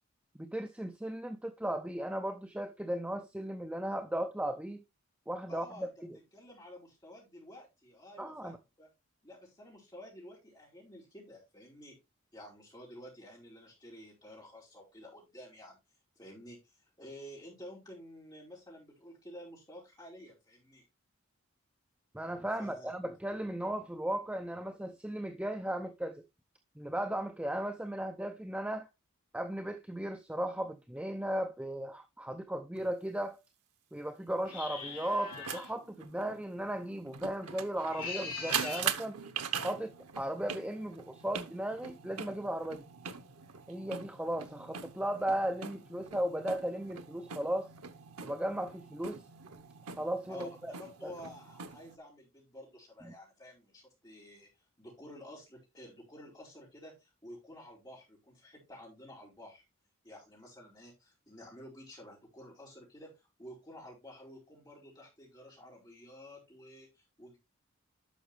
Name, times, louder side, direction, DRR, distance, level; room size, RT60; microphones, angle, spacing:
voice 1, 0.4-4.8 5.3-6.2 8.2-8.6 22.1-26.2 26.8-28.9 29.3-33.4 33.9-39.2 39.6-42.9 43.7-47.7 48.2-49.2 50.0-50.7 51.0-51.1 53.0-53.1, right 1 dB, 5° right, 0.5 m, -36 dB
voice 2, 5.5-5.9 6.3-8.9 9.2-12.0 12.3-15.8 16.1-20.8 22.6-22.9 38.5-38.8 50.3-54.5 54.8-59.6 60.0-63.1 63.4-67.4, equal, 20° left, 4.9 m, -51 dB
sound 1, 32.8-32.9 34.9-52.0, right 7 dB, 85° right, 0.9 m, -42 dB
sound 2, 34.4-35.7 37.8-38.9, left 4 dB, 40° left, 4.2 m, -41 dB
11.0 x 6.3 x 3.1 m
head